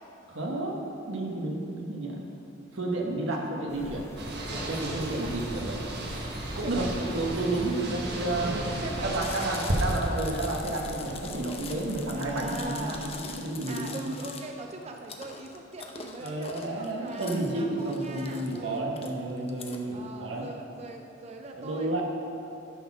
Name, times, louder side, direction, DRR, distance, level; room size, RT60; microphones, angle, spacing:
voice 1, 0.3-0.8 1.1-2.2 2.7-4.1 4.6-5.8 6.5-8.6 9.0-14.1 16.2-20.5 21.5-22.0, right 2 dB, 85° right, 0 dB, 1.2 m, -31 dB
sound 1, 3.7-13.2, equal, 15° left, 1.1 m, -44 dB
sound 2, 4.2-9.9, right 1 dB, 60° right, 1.2 m, -33 dB
voice 2, 6.6-6.9 8.8-9.5 12.1-18.9 19.9-22.0, right 2 dB, 35° right, 3 dB, 0.4 m, -41 dB
Chewing mastication, 9.1-19.8, left 5 dB, 30° left, 0.7 m, -43 dB
11.5 x 4.2 x 5.9 m, 2.9 s
head